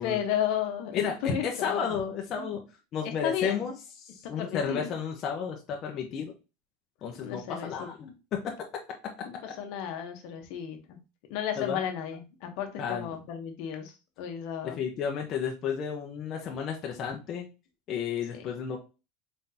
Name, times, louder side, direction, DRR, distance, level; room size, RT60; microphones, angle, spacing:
voice 1, 0.0-2.0 2.3-2.5 3.0-3.7 4.2-4.9 7.2-7.9 9.2-11.0 11.3-14.8 18.3-18.5, left 8 dB, 60° left, 5 dB, 1.0 m, -33 dB
voice 2, 1.4-2.6 2.9-3.7 4.0-6.3 7.0-8.5 11.6-11.8 12.8-13.2 14.6-17.5 17.9-18.8, left 7 dB, 35° left, 1 dB, 0.8 m, -32 dB
4.4 x 3.8 x 2.8 m, 0.29 s
supercardioid pair, 145°, 0 cm